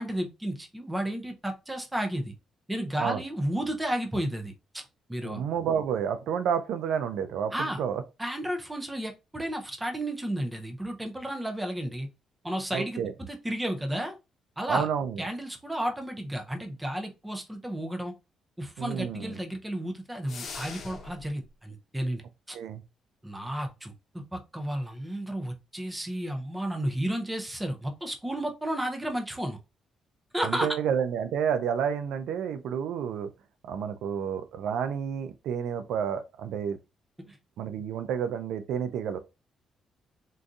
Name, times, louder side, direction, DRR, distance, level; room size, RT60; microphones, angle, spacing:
voice 1, 0.0-2.3 2.7-4.8 5.1-5.4 7.5-7.8 8.2-12.1 12.4-13.0 13.3-14.2 14.6-14.9 15.2-18.1 18.6-22.2 22.5-22.6 23.2-29.6 30.3-30.8 37.3-37.4, right 1 dB, 10° right, 0.5 m, -32 dB
voice 2, 5.2-8.0 12.7-13.1 14.7-15.2 18.8-19.4 22.5-22.8 30.4-33.3 33.6-36.8 37.6-39.2, right 8 dB, 85° right, 0.3 m, -30 dB
sound 1, 20.3-21.3, left 5 dB, 60° left, 0.7 m, -41 dB
3.7 x 2.6 x 2.3 m
cardioid pair, 140°, 0 cm